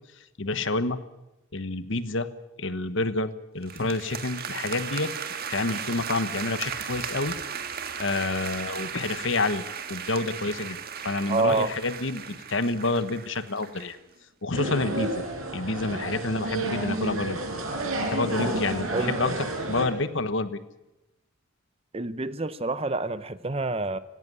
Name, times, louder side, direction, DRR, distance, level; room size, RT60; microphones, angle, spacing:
voice 1, 0.4-1.0 1.5-2.3 2.6-5.1 5.5-7.3 8.0-10.8 11.0-14.0 14.4-15.2 15.5-17.4 18.0-19.3 19.7-20.6, left 2 dB, 60° left, 13 dB, 1.2 m, -28 dB
sound 1, 3.6-14.0, right 7 dB, 45° right, 1.6 m, -36 dB
voice 2, 11.3-11.7 18.9-19.1 21.9-24.0, right 3 dB, 30° right, 15 dB, 0.7 m, -27 dB
sound 2, 14.6-19.9, right 2 dB, 90° right, 5.0 m, -30 dB
17.5 x 16.5 x 9.7 m, 0.93 s
head